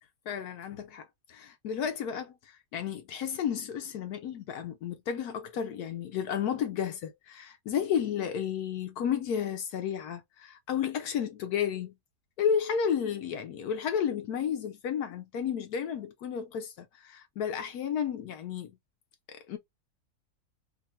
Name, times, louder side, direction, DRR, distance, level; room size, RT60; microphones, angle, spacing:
voice 1, 0.3-11.9 12.4-18.7 19.3-19.6, left 8 dB, 75° left, 1.1 m, -32 dB
2.9 x 2.5 x 4.2 m
omnidirectional pair, 1.7 m